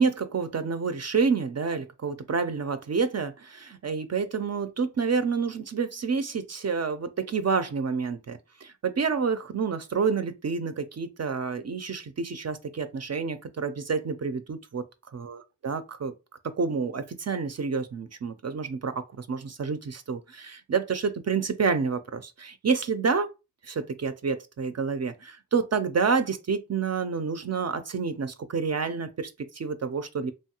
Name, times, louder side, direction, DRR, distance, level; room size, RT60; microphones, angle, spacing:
voice 1, 0.0-14.8 15.1-16.1 16.5-23.3 23.6-30.3, right 5 dB, 45° right, 0.4 m, -28 dB
3.1 x 2.3 x 2.8 m
cardioid pair, 45°, 36 cm